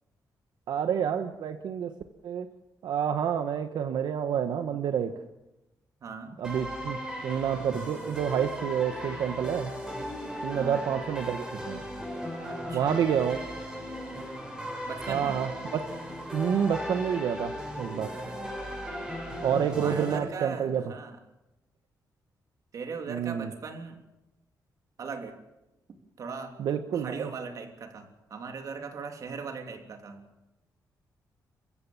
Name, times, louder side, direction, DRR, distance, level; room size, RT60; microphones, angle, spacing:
voice 1, 0.7-1.9 2.2-2.5 2.8-5.1 6.4-9.7 10.4-11.8 12.7-13.4 15.1-15.8 16.3-18.2 19.4-20.9 23.1-23.5 26.6-27.3, right 8 dB, 85° right, 8 dB, 1.2 m, -29 dB
voice 2, 6.0-6.4 10.5-11.0 12.5-13.0 14.9-15.4 18.1-18.5 19.4-21.2 22.7-24.0 25.0-25.4 26.2-26.6 26.9-30.2, right 5 dB, 50° right, 5 dB, 3.1 m, -39 dB
sound 1, 6.4-20.2, equal, 10° right, 6.9 m, -37 dB
29.5 x 15.5 x 7.1 m, 0.97 s
wide cardioid pair, 160°, 7 cm